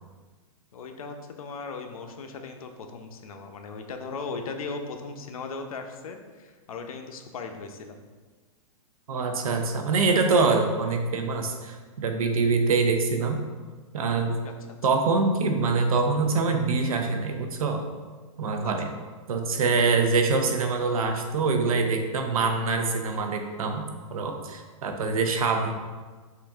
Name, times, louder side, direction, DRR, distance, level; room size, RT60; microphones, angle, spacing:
voice 1, 0.7-8.0 14.4-14.5, left 4 dB, 85° left, 5 dB, 0.6 m, -38 dB
voice 2, 9.1-13.4 13.9-14.4 14.8-17.8 18.4-18.9 19.3-25.7, right 4 dB, 85° right, 4 dB, 0.7 m, -24 dB
5.6 x 2.6 x 3.5 m, 1.4 s
hypercardioid pair, 160°, 18 cm